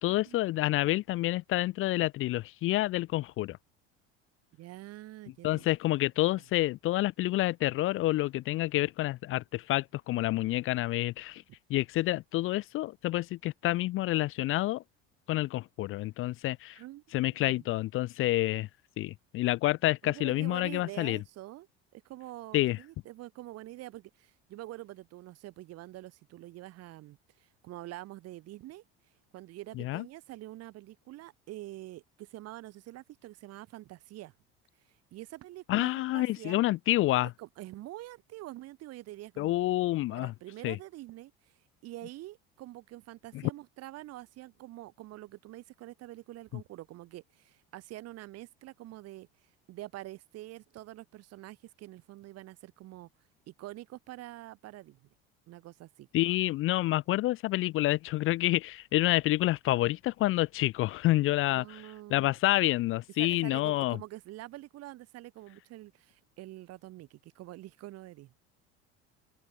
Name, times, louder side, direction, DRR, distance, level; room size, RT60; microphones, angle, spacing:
voice 1, 0.0-3.6 5.4-11.4 11.7-14.8 15.3-16.8 17.1-18.7 19.0-21.2 22.5-22.8 29.8-30.0 35.7-37.3 39.4-40.3 40.6-40.8 56.1-61.8 62.1-64.0, left 17 dB, 45° left, 0.4 m, -28 dB
voice 2, 4.5-5.7 16.7-17.6 20.0-21.7 21.9-28.8 29.3-34.3 35.1-36.6 37.4-39.5 40.1-41.5 41.8-53.1 53.5-55.1 55.5-56.1 61.5-62.3 63.2-68.3, right 16 dB, 55° right, 1.0 m, -46 dB
hypercardioid pair, 80°, 30 cm